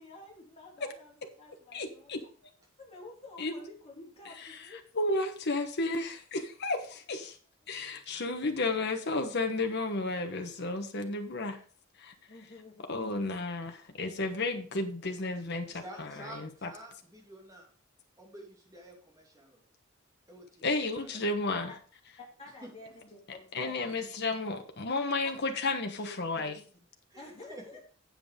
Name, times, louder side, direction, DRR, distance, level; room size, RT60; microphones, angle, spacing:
voice 1, 0.0-2.1 2.8-4.8 8.4-8.7 12.3-13.0 21.7-21.8 22.4-24.1 25.2-25.3 26.0-26.6 27.1-27.8, left 2 dB, 30° left, -2 dB, 3.3 m, -50 dB
voice 2, 1.7-2.2 3.4-3.6 4.5-4.6 4.9-7.4 7.7-11.6 12.0-12.1 12.9-16.7 20.6-21.7 23.5-26.5, left 2 dB, 55° left, 5 dB, 1.2 m, -32 dB
voice 3, 7.7-8.2 15.7-17.7 18.2-19.6 20.3-20.7 20.9-21.1 22.6-22.7 27.1-27.8, right 1 dB, 15° right, 0 dB, 2.8 m, -50 dB
7.9 x 7.7 x 5.1 m, 0.42 s
head